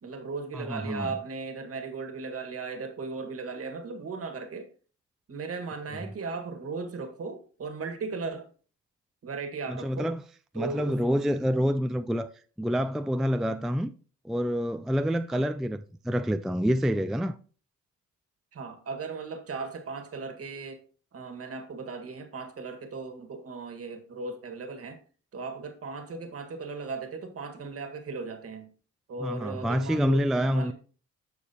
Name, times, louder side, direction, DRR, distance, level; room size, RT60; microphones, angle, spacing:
voice 1, 0.0-4.7 5.3-8.5 9.2-10.1 10.5-11.0 15.3-15.5 18.5-20.8 21.1-25.0 25.3-28.7 29.1-30.7, right 4 dB, 50° right, 1.7 m, -37 dB
voice 2, 0.5-1.1 9.7-10.2 10.5-12.3 12.6-13.9 14.2-17.4 29.2-30.7, equal, ahead, 0.3 m, -27 dB
13.5 x 4.7 x 2.8 m
cardioid pair, 90°, 30 cm